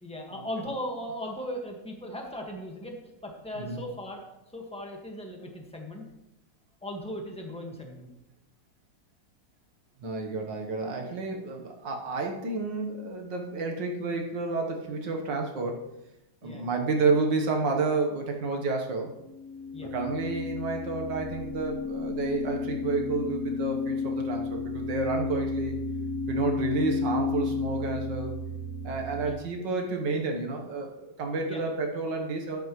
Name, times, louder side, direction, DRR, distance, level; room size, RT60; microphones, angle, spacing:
voice 1, 0.0-3.0 3.2-4.2 4.5-6.0 6.8-8.1 16.4-16.7 19.7-19.9 29.2-29.4 31.5-31.6, equal, 5° left, 1 dB, 1.5 m, -37 dB
voice 2, 10.0-15.8 16.4-19.1 19.9-25.8 26.3-28.3 28.8-32.6, right 3 dB, 85° right, 2 dB, 1.9 m, -30 dB
sound 1, 19.2-29.3, left 4 dB, 25° right, 1.7 m, -32 dB
13.0 x 9.9 x 3.1 m, 0.91 s
omnidirectional pair, 1.9 m